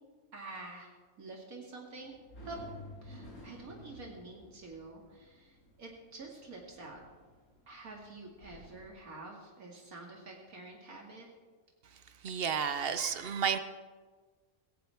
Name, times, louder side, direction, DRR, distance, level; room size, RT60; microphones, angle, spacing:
voice 1, 0.3-0.9 1.2-2.1 2.4-2.6 3.0-7.0 7.7-11.3, right 2 dB, 80° right, -1 dB, 2.7 m, -48 dB
sound 1, 1.9-8.9, left 1 dB, 90° left, 4.4 m, -53 dB
voice 2, 12.2-13.6, right 7 dB, 50° right, 10 dB, 0.9 m, -31 dB
17.0 x 16.5 x 3.5 m, 1.5 s
omnidirectional pair, 1.5 m